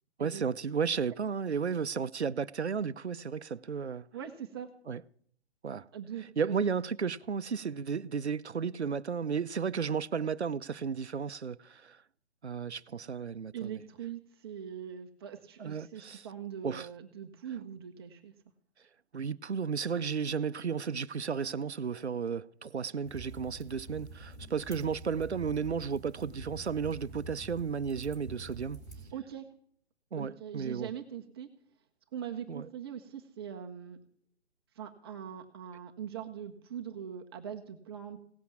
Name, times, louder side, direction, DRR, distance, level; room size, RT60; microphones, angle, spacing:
voice 1, 0.2-4.0 4.9-5.0 5.6-5.9 6.4-12.0 12.4-13.8 15.6-16.3 16.6-16.9 19.1-28.8 30.1-30.9 32.5-32.7, right 6 dB, 85° right, 0.7 m, -33 dB
voice 2, 4.1-4.7 5.9-6.6 13.5-18.3 29.1-29.4 30.2-31.5 32.1-34.0 34.7-38.2, right 9 dB, 25° right, 0.8 m, -42 dB
sound 1, 23.0-29.1, right 2 dB, 10° left, 3.6 m, -47 dB
17.0 x 8.4 x 7.3 m
figure-of-eight pair, 140°, 33 cm